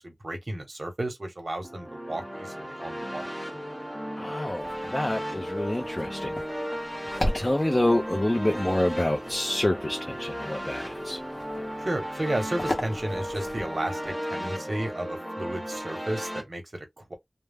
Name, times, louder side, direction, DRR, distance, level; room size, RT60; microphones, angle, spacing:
voice 1, 0.0-3.2 11.8-17.1, right 1 dB, 55° right, 0.9 m, -33 dB
sound 1, 1.6-16.4, equal, ahead, 0.8 m, -35 dB
voice 2, 4.2-6.3 7.3-11.2, left 1 dB, 30° left, 0.5 m, -27 dB
sound 2, 4.5-14.0, left 1 dB, 45° left, 0.8 m, -38 dB
2.2 x 2.1 x 3.3 m
wide cardioid pair, 55°, 0 cm